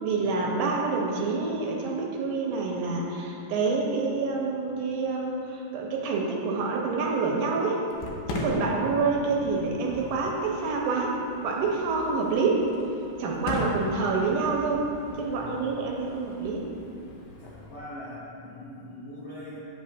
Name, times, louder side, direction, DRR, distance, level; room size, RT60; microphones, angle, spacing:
voice 1, 0.0-7.8 8.3-11.2 11.4-12.7 13.2-14.9 15.2-16.7, right 4 dB, 80° right, -1 dB, 2.1 m, -27 dB
Fireworks, 7.9-17.8, left 2 dB, 80° left, 2.4 m, -39 dB
voice 2, 8.5-8.9 15.1-15.7 17.4-19.6, left 1 dB, 65° left, -10 dB, 1.2 m, -42 dB
8.5 x 7.5 x 2.4 m, 2.8 s
omnidirectional pair, 3.8 m